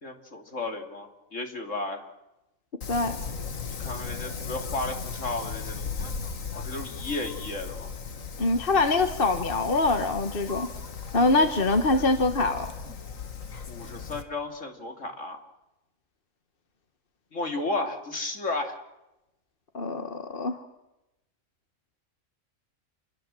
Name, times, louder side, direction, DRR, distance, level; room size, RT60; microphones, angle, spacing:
voice 1, 0.0-2.0 3.8-6.1 6.6-7.9 13.7-15.4 17.3-18.8, left 2 dB, 65° left, 4 dB, 3.2 m, -33 dB
Wind, 2.8-14.2, left 5 dB, 85° left, 2.0 m, -37 dB
voice 2, 8.4-10.7 11.1-12.7 19.7-20.6, left 2 dB, 45° left, 7 dB, 1.6 m, -24 dB
28.0 x 22.0 x 7.7 m, 0.94 s
omnidirectional pair, 1.4 m